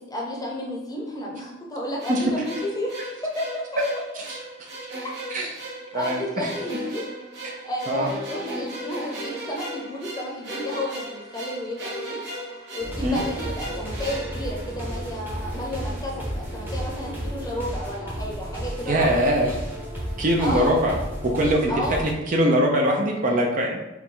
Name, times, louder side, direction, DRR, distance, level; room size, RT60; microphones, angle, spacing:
voice 1, 0.0-3.8 5.0-5.3 5.9-7.1 7.5-19.5 20.4-20.8 21.7-22.0, left 1 dB, 20° left, -2 dB, 0.7 m, -32 dB
sound 1, 2.0-15.3, right 1 dB, 65° right, 1.2 m, -36 dB
voice 2, 5.9-6.5 7.9-8.1 13.0-13.2 18.9-19.5 20.2-21.0 21.3-21.7 22.0-23.8, equal, 45° right, 0 dB, 0.6 m, -22 dB
sound 2, 12.8-22.1, equal, 10° right, 0.8 m, -33 dB
4.7 x 2.2 x 3.8 m, 0.97 s
head